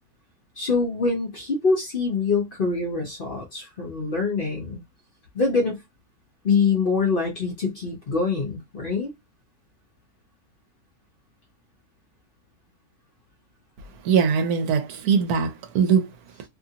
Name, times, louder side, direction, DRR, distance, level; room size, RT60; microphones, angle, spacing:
voice 1, 0.6-4.8 5.3-5.8 6.4-9.1, left 4 dB, 45° left, 0.8 m, -24 dB
voice 2, 13.9-16.5, right 6 dB, 80° right, 1.1 m, -22 dB
2.8 x 2.5 x 2.7 m
omnidirectional pair, 1.6 m